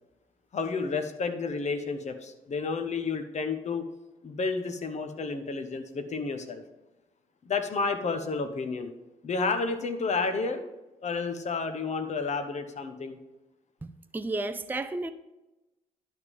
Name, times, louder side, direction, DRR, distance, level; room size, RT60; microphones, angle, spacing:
voice 1, 0.5-3.9 4.2-6.6 7.4-8.9 9.2-10.6 11.0-13.2, left 4 dB, 40° left, 1.1 m, -31 dB
voice 2, 13.8-15.1, right 2 dB, 10° right, 0.5 m, -33 dB
10.5 x 3.7 x 7.1 m
figure-of-eight pair, 45°, 18 cm